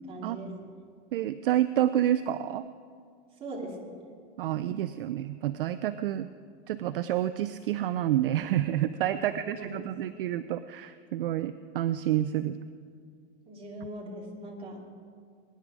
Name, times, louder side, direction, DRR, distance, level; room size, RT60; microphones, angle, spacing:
voice 1, 0.1-0.5 3.4-4.0 9.1-9.9 13.5-14.8, right 1 dB, 15° right, -2 dB, 2.3 m, -40 dB
voice 2, 1.1-2.6 4.4-6.3 6.7-12.6, right 12 dB, 50° right, 13 dB, 0.5 m, -29 dB
22.0 x 10.5 x 4.8 m, 2.1 s
hypercardioid pair, 155°, 36 cm